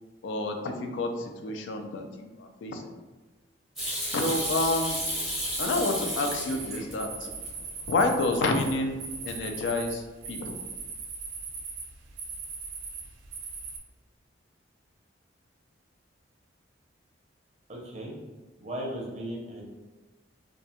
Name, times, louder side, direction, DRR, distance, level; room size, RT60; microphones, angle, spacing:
voice 1, 0.2-2.9 4.1-5.0 5.6-7.3 7.9-9.0 9.2-10.6, left 2 dB, 70° left, 5 dB, 0.3 m, -29 dB
Hands / Sink (filling or washing), 3.8-6.9 7.3-8.1 8.4-8.9 9.1-9.6, equal, ahead, 0.7 m, -33 dB
sound 1, 4.2-13.8, right 4 dB, 85° right, 0.4 m, -40 dB
voice 2, 17.7-18.2 18.6-19.6, right 1 dB, 35° right, -2 dB, 0.5 m, -36 dB
2.3 x 2.1 x 2.7 m, 1.2 s
head